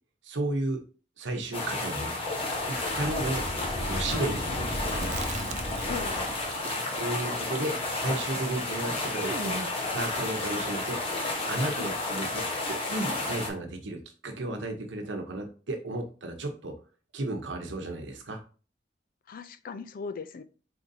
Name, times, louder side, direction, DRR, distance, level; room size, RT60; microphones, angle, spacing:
voice 1, 0.2-0.8 1.2-2.1 2.7-3.5 3.8-5.2 7.0-11.0 11.5-16.7 17.1-18.4, right 2 dB, 80° right, 4 dB, 0.9 m, -33 dB
sound 1, 1.5-13.5, left 2 dB, 30° left, 1.1 m, -32 dB
sound 2, 2.7-6.6, equal, 85° left, 1.6 m, -36 dB
Chewing mastication, 4.7-6.2 6.4-9.8, right 4 dB, 40° right, 0.4 m, -41 dB
voice 2, 5.9-6.3 11.8-12.0 19.3-20.4, left 5 dB, 50° left, 11 dB, 0.4 m, -38 dB
4.4 x 3.9 x 2.7 m, 0.38 s
head